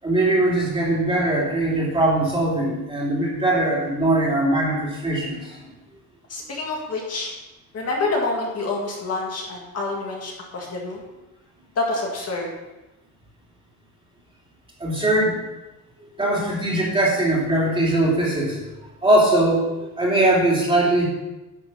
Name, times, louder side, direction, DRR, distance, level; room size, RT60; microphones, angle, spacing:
voice 1, 0.0-5.6 14.8-15.4 16.2-18.6 19.0-21.1, right 1 dB, 15° right, -5 dB, 2.8 m, -21 dB
voice 2, 6.3-7.3 7.7-11.0 11.8-12.5, left 3 dB, 45° left, -1 dB, 2.0 m, -27 dB
11.0 x 6.0 x 5.5 m, 1.0 s
cardioid pair, 170°, 35 cm